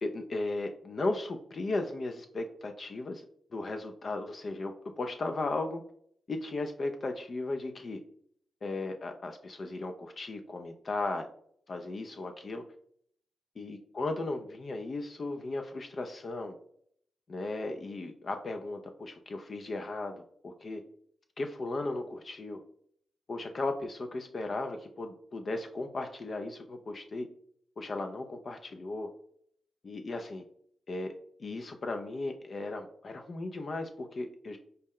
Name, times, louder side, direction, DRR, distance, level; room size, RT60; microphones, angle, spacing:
voice 1, 0.0-3.2 3.5-5.8 6.3-8.0 8.6-11.3 11.7-12.6 13.6-16.6 17.3-20.8 21.4-22.6 23.3-27.3 27.8-29.1 29.8-30.4 30.9-31.1 31.4-34.6, left 2 dB, 50° left, 5 dB, 0.4 m, -36 dB
5.4 x 2.1 x 3.6 m, 0.64 s
cardioid pair, 60°, 0 cm